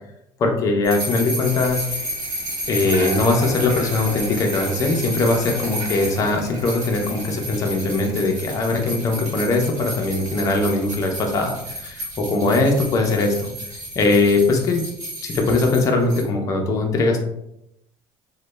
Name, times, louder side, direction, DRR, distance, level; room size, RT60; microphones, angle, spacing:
voice 1, 0.4-1.9 2.7-13.5 14.0-14.8 15.2-17.2, left 3 dB, 30° left, 2 dB, 0.4 m, -21 dB
sound 1, 0.8-16.2, equal, 35° right, 1.3 m, -32 dB
Bicycle, 1.4-14.6, right 2 dB, 80° right, 0.9 m, -39 dB
3.0 x 2.1 x 3.1 m, 0.83 s
cardioid pair, 180°, 11 cm